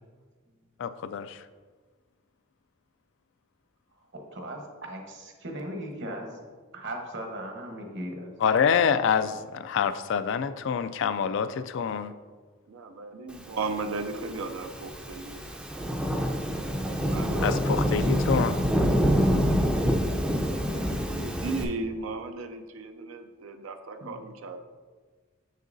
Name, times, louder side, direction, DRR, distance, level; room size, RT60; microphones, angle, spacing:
voice 1, 0.8-1.4 8.4-12.1 17.4-18.6, left 7 dB, 60° left, 12 dB, 0.3 m, -26 dB
voice 2, 4.1-6.4 6.7-8.3 17.3-17.5 24.0-24.2, right 1 dB, 60° right, 2 dB, 1.1 m, -38 dB
voice 3, 12.7-15.8 16.9-18.0 20.5-24.6, right 3 dB, 80° right, 7 dB, 0.5 m, -36 dB
Thunderstorm / Rain, 13.9-21.6, equal, 5° right, 0.4 m, -26 dB
7.0 x 6.5 x 2.6 m, 1.5 s
head